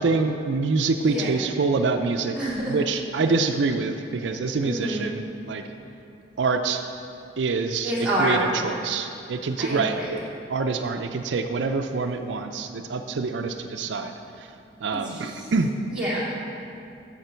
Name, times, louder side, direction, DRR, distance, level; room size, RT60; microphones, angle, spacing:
voice 1, 0.0-2.4 2.7-5.6 6.4-6.8 7.4-7.9 8.2-10.2 10.5-14.5 14.8-15.7, right 4 dB, 80° right, 6 dB, 0.5 m, -26 dB
voice 2, 1.0-1.3 2.4-2.8 4.6-5.0 7.8-8.4 9.6-10.1 15.0-15.5 15.9-16.2, right 1 dB, 5° right, -9 dB, 2.5 m, -27 dB
15.0 x 5.8 x 4.4 m, 2.7 s
head